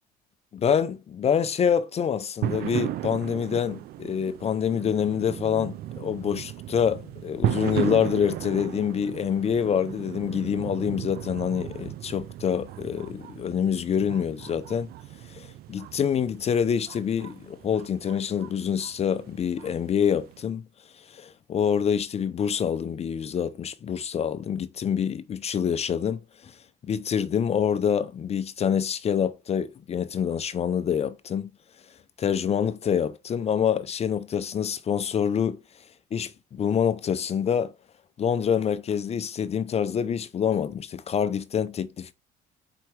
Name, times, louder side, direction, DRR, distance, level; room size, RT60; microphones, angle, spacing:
voice 1, 0.5-14.9 15.3-20.6 21.1-26.5 26.9-31.5 32.2-35.6 36.1-37.7 38.2-42.1, left 8 dB, 40° left, 0.5 m, -26 dB
sound 1, 2.4-20.4, right 13 dB, 65° right, 0.4 m, -36 dB
4.7 x 4.4 x 4.6 m
cardioid pair, 110°, 17 cm